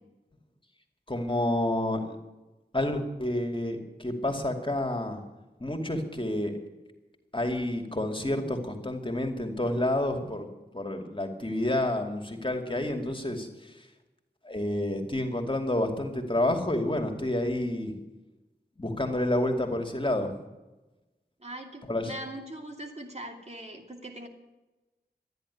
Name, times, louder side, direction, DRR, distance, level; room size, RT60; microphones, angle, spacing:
voice 1, 1.1-2.2 2.7-5.2 5.6-6.5 7.3-10.5 10.7-13.7 14.4-17.9 18.8-20.3 21.9-22.1, left 1 dB, 30° left, 3 dB, 2.4 m, -29 dB
voice 2, 21.4-24.3, right 1 dB, 40° right, 2 dB, 2.6 m, -41 dB
13.5 x 10.5 x 9.8 m, 1.1 s
wide cardioid pair, 50°, 17 cm